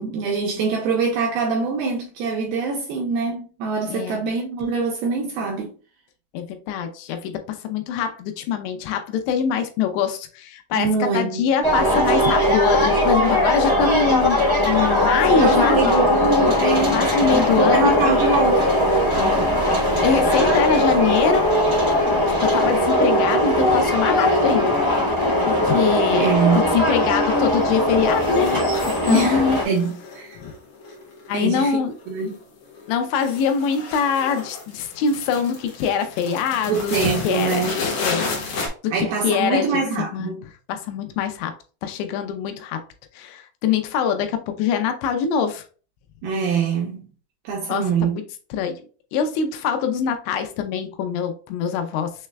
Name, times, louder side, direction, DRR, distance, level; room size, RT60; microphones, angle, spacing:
voice 1, 0.0-5.7 10.7-11.5 15.4-17.0 17.3-18.7 26.1-26.7 29.1-30.4 31.3-31.8 32.1-32.4 36.7-37.8 38.9-40.4 46.2-47.1 47.4-48.2, right 4 dB, 80° right, 2.2 m, -24 dB
voice 2, 3.9-4.2 6.3-10.9 11.1-14.4 14.6-15.8 16.9-17.9 19.2-21.5 22.4-24.7 25.5-29.6 30.4-30.5 31.3-31.9 32.9-36.9 37.2-37.7 38.0-39.7 40.0-40.4 40.7-41.5 41.8-42.8 43.1-45.6 47.7-48.2 48.5-48.8 49.1-52.1, left 6 dB, 90° left, 2.9 m, -23 dB
sound 1, 11.6-29.6, left 1 dB, 35° right, 0.6 m, -19 dB
sound 2, 27.4-27.8 28.0-29.0 29.4-31.6 31.9-32.4 32.6-38.7, left 4 dB, 65° left, 1.9 m, -32 dB
6.5 x 3.2 x 2.2 m
omnidirectional pair, 5.0 m